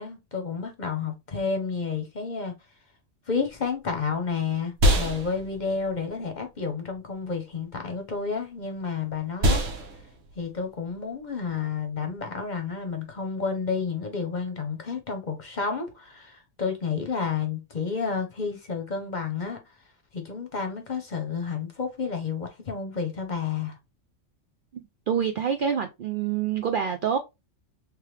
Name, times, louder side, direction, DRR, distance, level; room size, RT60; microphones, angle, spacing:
voice 1, 0.0-2.5 3.3-9.6 10.4-19.6 20.1-23.8, left 5 dB, 40° left, 0.9 m, -30 dB
sound 1, 3.4-13.1, equal, 85° right, 1.4 m, -30 dB
voice 2, 25.1-27.2, right 8 dB, 60° right, 0.5 m, -26 dB
3.4 x 3.3 x 3.2 m
omnidirectional pair, 1.3 m